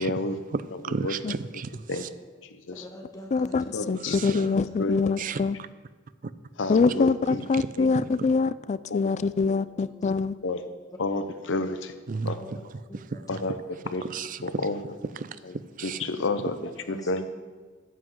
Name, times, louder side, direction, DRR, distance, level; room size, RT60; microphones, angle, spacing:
voice 1, 0.0-0.4 0.9-1.2 1.9-2.0 2.7-2.9 3.7-4.4 4.8-5.0 6.6-7.4 7.8-7.9 8.9-9.0 9.5-9.6 10.4-10.6 11.0-12.0 12.2-12.4 13.3-13.6 13.9-14.0 14.4-14.8 15.4-15.5 15.8-17.2, left 2 dB, 75° left, 0.8 m, -30 dB
voice 2, 0.5-2.1 4.0-4.4 5.2-5.4 7.5-7.7 12.1-12.3 12.9-13.2 14.0-14.4 15.2-15.4 15.8-16.1, right 5 dB, 45° right, 0.4 m, -33 dB
voice 3, 2.7-4.1 4.7-5.3 9.8-9.9 12.4-12.5 12.9-13.0 13.9-14.1 16.9-17.3, equal, 20° left, 1.5 m, -44 dB
voice 4, 3.3-5.6 6.7-10.4, left 4 dB, 35° left, 0.3 m, -24 dB
9.4 x 6.0 x 7.9 m
head